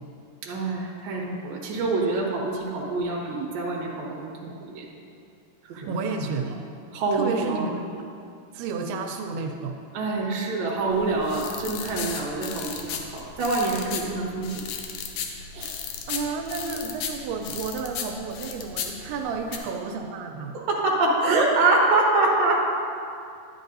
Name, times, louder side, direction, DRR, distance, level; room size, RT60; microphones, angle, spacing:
voice 1, 0.4-4.9 5.6-5.9 6.9-7.6 9.9-14.6 15.5-15.7 20.5-22.6, right 2 dB, 60° right, -2 dB, 2.1 m, -25 dB
voice 2, 5.7-6.6 7.1-7.8 8.5-9.8 16.1-20.6, right 4 dB, 85° right, 3 dB, 2.5 m, -31 dB
sound 1, 10.9-19.6, left 7 dB, 90° left, 1.8 m, -35 dB
10.5 x 9.9 x 2.6 m, 2.5 s
omnidirectional pair, 4.5 m